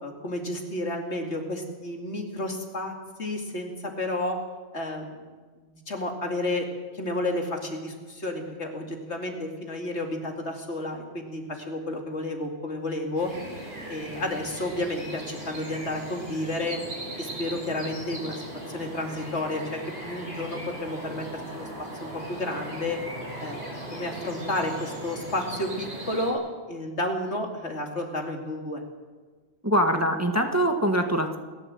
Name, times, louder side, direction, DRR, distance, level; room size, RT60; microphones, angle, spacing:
voice 1, 0.0-2.9 3.2-4.4 4.7-5.2 5.9-6.7 6.9-13.3 13.9-16.8 17.2-21.7 22.0-23.0 23.4-26.4 26.7-28.8, left 1 dB, 75° left, 2 dB, 2.9 m, -31 dB
sound 1, 13.2-26.3, right 1 dB, 50° right, 6.5 m, -38 dB
voice 2, 29.6-31.4, equal, 15° right, 4 dB, 1.5 m, -23 dB
28.5 x 12.0 x 7.8 m, 1.4 s
omnidirectional pair, 1.2 m